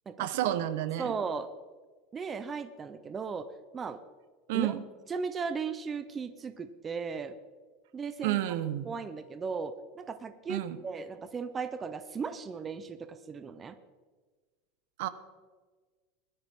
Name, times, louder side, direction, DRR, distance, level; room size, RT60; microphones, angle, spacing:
voice 1, 0.2-1.1 4.5-4.8 8.2-8.9 10.5-10.8 15.0-15.1, right 13 dB, 70° right, 12 dB, 1.1 m, -30 dB
voice 2, 1.0-1.5 2.1-3.5 3.7-4.0 4.5-4.7 5.1-7.4 7.9-8.6 8.8-13.8, right 5 dB, 15° right, 9 dB, 0.6 m, -36 dB
20.0 x 13.0 x 3.7 m, 1.4 s
supercardioid pair, 170°, 0 cm